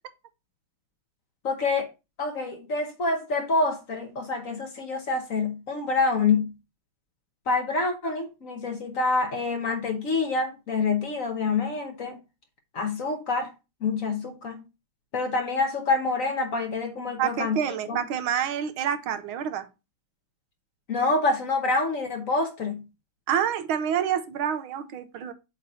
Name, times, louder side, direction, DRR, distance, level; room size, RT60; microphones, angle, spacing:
voice 1, 1.4-1.9 2.2-6.5 7.5-12.2 12.7-13.5 13.8-14.6 15.1-18.0 20.9-22.8, left 3 dB, 50° left, 1.1 m, -27 dB
voice 2, 17.2-19.7 23.3-25.3, right 9 dB, 85° right, 1.6 m, -27 dB
7.5 x 3.0 x 5.5 m
omnidirectional pair, 2.2 m